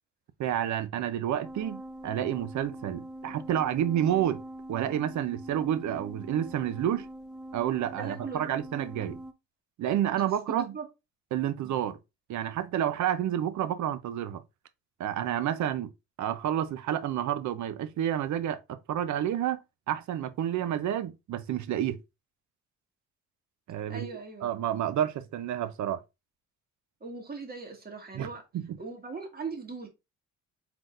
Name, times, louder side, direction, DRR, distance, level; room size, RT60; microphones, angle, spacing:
voice 1, 0.4-4.4 4.7-7.1 7.5-9.2 9.8-10.7 11.3-12.0 12.3-14.4 15.0-15.9 16.2-19.6 19.9-22.0 23.7-24.1 24.4-26.0 28.1-28.3 28.5-28.8, right 10 dB, 70° right, 0.7 m, -29 dB
sound 1, 1.4-9.3, right 1 dB, ahead, 0.5 m, -43 dB
voice 2, 8.0-8.6 10.2-10.9 23.9-24.5 27.0-28.4 28.8-29.9, right 4 dB, 30° right, 1.8 m, -39 dB
4.8 x 3.8 x 2.5 m
cardioid pair, 90°, 30 cm